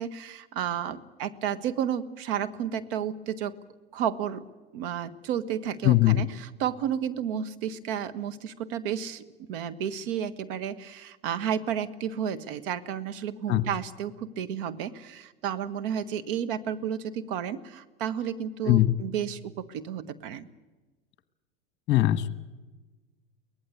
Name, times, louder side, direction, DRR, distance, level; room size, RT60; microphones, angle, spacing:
voice 1, 0.0-3.6 3.9-4.5 4.7-20.5, right 9 dB, 60° right, 9 dB, 1.5 m, -32 dB
voice 2, 5.8-6.2 13.5-13.6 18.6-18.9 21.9-22.3, left 15 dB, 35° left, 14 dB, 1.3 m, -20 dB
23.5 x 18.5 x 8.4 m, 1.2 s
hypercardioid pair, 90°, 31 cm